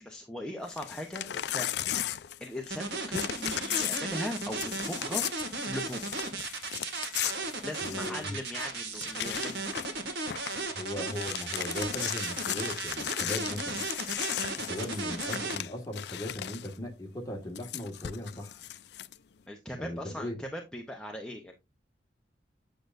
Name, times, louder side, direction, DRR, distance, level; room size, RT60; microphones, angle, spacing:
voice 1, 0.0-1.7 2.4-5.2 5.6-6.0 7.6-9.7 19.5-21.5, left 1 dB, 5° left, 0.8 m, -39 dB
Crumpling crinkling / Tearing, 0.7-2.8 3.1-8.2 8.6-8.7 8.9-10.0 10.3-10.6 11.0-16.7 17.5-19.1, left 11 dB, 65° left, 0.4 m, -36 dB
sound 1, 2.7-15.6, right 3 dB, 70° right, 1.9 m, -35 dB
voice 2, 7.8-8.4 10.8-13.8 14.7-18.6 19.7-20.4, left 1 dB, 20° left, 1.7 m, -38 dB
8.4 x 6.6 x 2.6 m
head